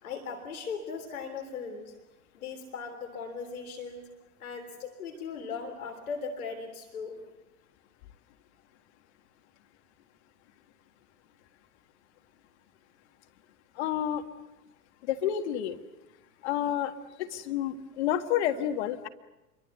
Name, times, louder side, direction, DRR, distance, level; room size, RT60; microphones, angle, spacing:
voice 1, 0.0-1.9 2.3-4.1 4.4-7.2, left 5 dB, 60° left, 4 dB, 3.6 m, -38 dB
voice 2, 13.8-14.2 15.1-15.8 16.4-16.9 17.2-19.1, left 11 dB, 45° left, 6 dB, 1.8 m, -29 dB
28.0 x 23.5 x 8.1 m, 0.99 s
figure-of-eight pair, 100°, 48 cm